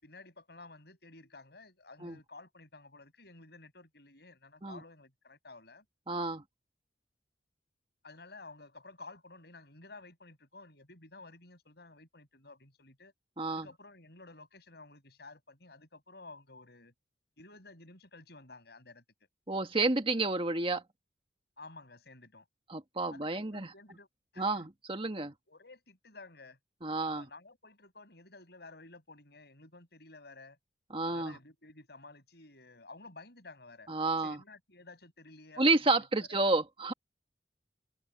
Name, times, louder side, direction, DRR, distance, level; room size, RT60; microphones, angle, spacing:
voice 1, 0.0-5.8 8.0-13.1 13.5-16.9 17.4-19.0 21.6-22.4 23.1-24.1 24.3-24.6 25.5-26.6 27.0-30.6 31.1-33.9 34.2-35.7 35.9-36.4, left 3 dB, 60° left, 7.6 m, -53 dB
voice 2, 6.1-6.4 13.4-13.7 19.5-20.8 22.7-23.7 24.4-25.3 26.8-27.3 30.9-31.4 33.9-34.4 35.6-36.9, right 3 dB, 30° right, 1.6 m, -30 dB
head